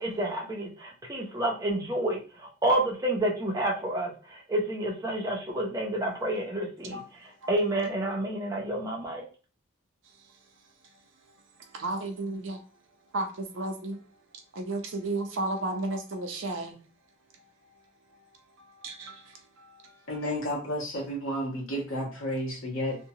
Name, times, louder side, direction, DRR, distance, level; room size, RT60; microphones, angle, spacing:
voice 1, 0.0-9.3, right 1 dB, 15° right, 0.5 m, -29 dB
voice 2, 11.7-12.6 13.1-14.0 14.5-16.8 18.8-19.2, right 2 dB, 65° right, 0.6 m, -32 dB
voice 3, 20.1-23.0, equal, 75° left, 1.0 m, -31 dB
2.8 x 2.2 x 2.7 m
head